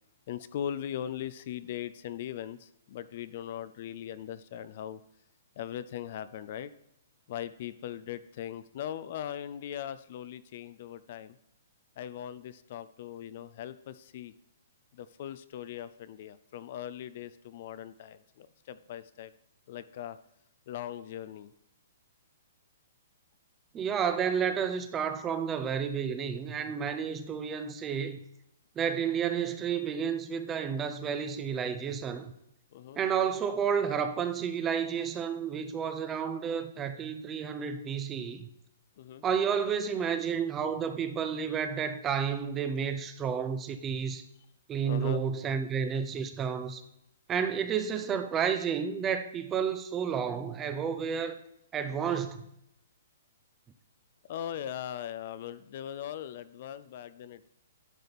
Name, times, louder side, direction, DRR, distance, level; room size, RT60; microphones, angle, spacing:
voice 1, 0.3-5.0 5.6-6.7 7.3-11.4 12.0-14.3 14.9-19.3 19.7-20.2 20.7-21.5 32.7-33.0 39.0-39.2 44.8-45.2 54.3-57.5, left 10 dB, 45° left, 0.4 m, -40 dB
voice 2, 23.7-28.2 28.8-32.3 33.0-38.5 39.2-44.2 44.7-46.8 47.3-51.4 51.7-52.4, right 7 dB, 15° right, 0.5 m, -31 dB
11.0 x 5.1 x 4.1 m
hypercardioid pair, 155°, 0 cm